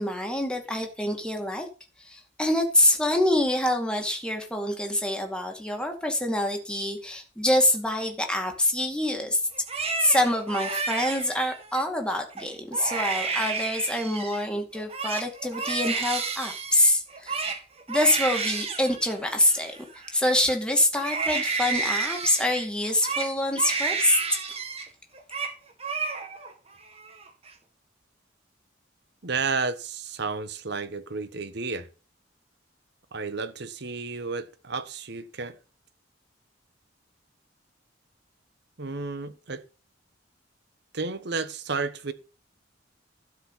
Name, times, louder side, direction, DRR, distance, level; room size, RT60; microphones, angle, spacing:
voice 1, 0.0-1.7 2.1-9.4 10.0-17.4 17.9-19.7 20.1-24.2, left 1 dB, 5° left, 2.3 m, -25 dB
Crying sobbing, 9.5-11.8 12.3-12.5 12.7-14.4 14.7-20.5 20.9-24.9 25.1-25.5 25.8-26.5 26.9-27.5, right 4 dB, 30° right, 1.9 m, -31 dB
voice 2, 29.2-31.9 33.1-35.6 38.8-39.6 40.9-42.1, right 4 dB, 60° right, 1.1 m, -32 dB
12.5 x 4.9 x 8.2 m
head